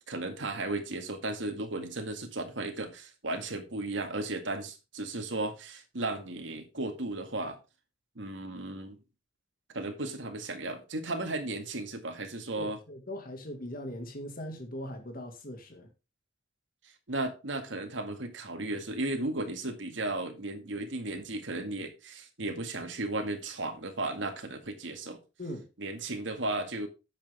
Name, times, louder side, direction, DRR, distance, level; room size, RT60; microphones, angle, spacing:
voice 1, 0.1-7.6 8.2-9.0 9.7-12.8 17.1-25.2 25.8-26.9, right 2 dB, 90° right, 2.0 m, -35 dB
voice 2, 12.5-15.9 25.4-25.7, equal, 50° left, 1.9 m, -40 dB
10.0 x 7.5 x 3.5 m
head